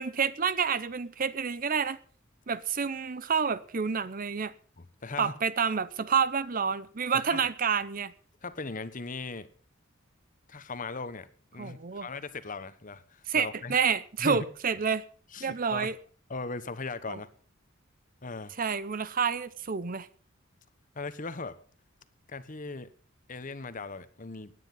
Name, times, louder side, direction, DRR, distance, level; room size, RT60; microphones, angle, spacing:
voice 1, 0.0-2.0 2.5-4.5 5.2-8.1 11.6-12.1 13.3-15.0 15.4-16.0 17.1-17.2 18.6-20.1, right 6 dB, 45° right, 17 dB, 0.7 m, -29 dB
voice 2, 4.8-5.3 7.1-7.4 8.4-9.5 10.5-13.8 14.2-14.5 15.3-15.9 16.3-17.3 18.2-18.5 20.9-21.6 22.3-22.9 23.3-24.5, left 3 dB, 40° left, 13 dB, 1.1 m, -38 dB
17.5 x 9.8 x 5.5 m, 0.43 s
head